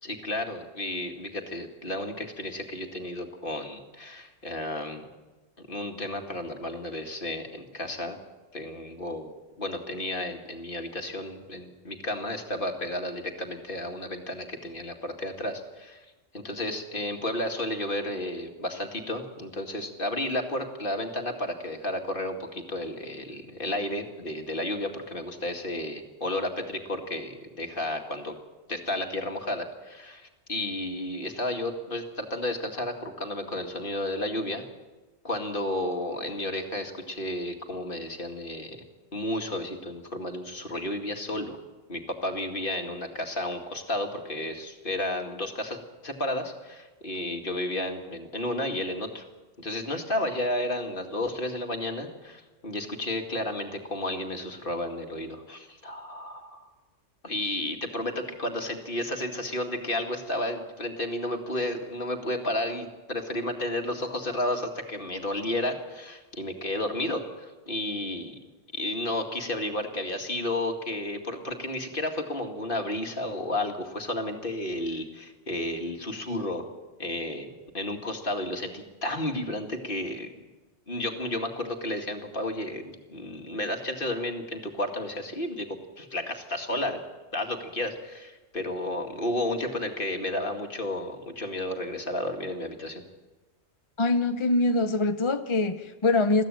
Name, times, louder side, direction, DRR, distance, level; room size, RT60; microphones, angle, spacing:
voice 1, 0.0-5.1 5.7-8.2 8.5-9.3 9.6-16.0 16.3-28.3 28.7-34.6 35.2-38.8 39.1-41.6 41.9-49.3 49.6-56.7 57.2-68.4 68.7-76.7 77.0-77.5 77.7-80.3 80.9-87.0 87.3-93.0, left 1 dB, 50° left, 4 dB, 2.4 m, -32 dB
voice 2, 94.0-96.4, left 2 dB, 30° left, 8 dB, 0.7 m, -24 dB
21.5 x 15.0 x 9.0 m, 1.2 s
omnidirectional pair, 1.2 m